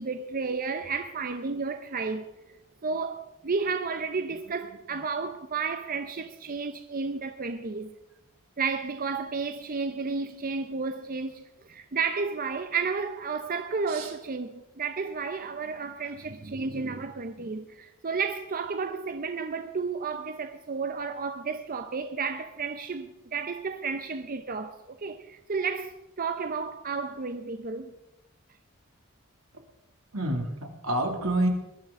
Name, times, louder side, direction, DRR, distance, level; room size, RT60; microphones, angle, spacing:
voice 1, 0.0-2.3 2.8-8.0 8.6-27.9, right 4 dB, 40° right, 0.7 m, -32 dB
voice 2, 30.1-31.5, right 1 dB, 85° right, 2.5 m, -28 dB
21.0 x 12.5 x 3.7 m
head